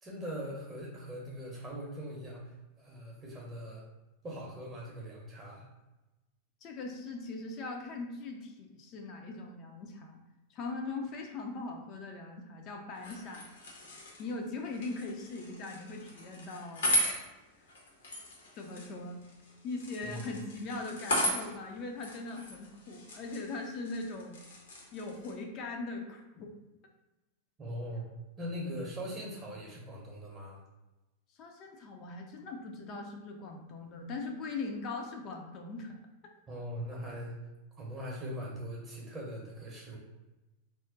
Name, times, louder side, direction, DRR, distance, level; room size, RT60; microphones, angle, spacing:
voice 1, 0.0-3.8 4.2-5.7 20.0-20.3 27.6-28.1 28.4-30.6 36.5-37.3 37.8-40.0, equal, 25° right, -4 dB, 0.7 m, -41 dB
voice 2, 6.6-10.2 10.5-13.5 14.2-16.9 18.5-19.2 19.6-24.4 24.9-26.5 31.4-36.0, left 3 dB, 35° left, 2 dB, 0.4 m, -40 dB
sound 1, 12.9-25.3, left 1 dB, 65° left, 0.7 m, -37 dB
2.4 x 2.1 x 3.7 m, 1.0 s
figure-of-eight pair, 90°, 0 cm